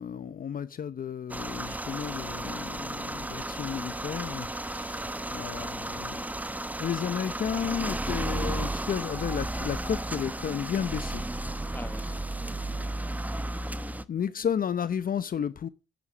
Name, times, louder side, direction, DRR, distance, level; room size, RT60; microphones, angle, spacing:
voice 1, 0.0-6.2 6.8-11.2 14.1-15.7, left 8 dB, 45° left, 0.8 m, -32 dB
sound 1, 1.3-14.0, right 1 dB, 10° right, 0.9 m, -34 dB
voice 2, 5.0-5.3 11.7-12.1 12.4-13.2 13.6-14.1, left 2 dB, 10° left, 1.3 m, -48 dB
10.5 x 9.7 x 6.2 m
cardioid pair, 90°, 20 cm